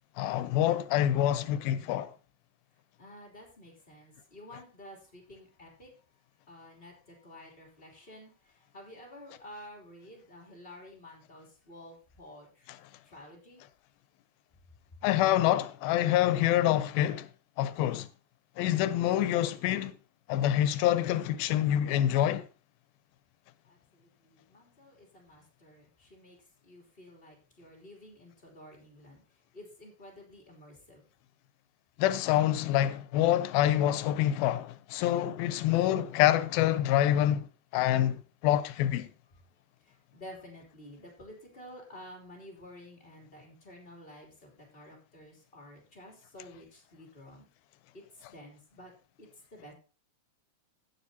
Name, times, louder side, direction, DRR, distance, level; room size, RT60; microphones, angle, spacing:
voice 1, 0.2-2.1 15.0-17.3 17.6-18.1 18.6-19.9 20.3-22.5 32.0-37.5 37.7-39.1, left 12 dB, 90° left, 2.5 m, -26 dB
voice 2, 3.0-5.9 6.5-12.7 13.0-13.6 23.6-26.4 26.6-29.2 29.5-31.0 39.8-47.5 47.9-48.9 49.2-49.7, left 1 dB, 15° left, 2.7 m, -51 dB
16.5 x 7.3 x 2.8 m
omnidirectional pair, 4.1 m